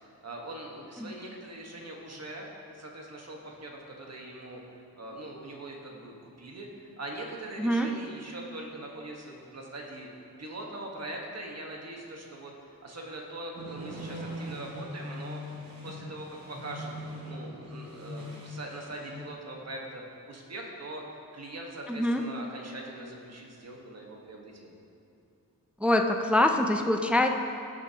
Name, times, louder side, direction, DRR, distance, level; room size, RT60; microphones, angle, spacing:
voice 1, 0.2-10.1 10.4-15.4 15.8-21.0 21.3-24.8, right 1 dB, 45° right, -1 dB, 1.4 m, -42 dB
sound 1, 13.5-19.2, equal, 85° right, 2.3 m, -41 dB
voice 2, 21.9-22.2 25.8-27.3, left 1 dB, 5° right, 4 dB, 0.4 m, -24 dB
17.0 x 7.0 x 2.9 m, 2.7 s
wide cardioid pair, 170°, 36 cm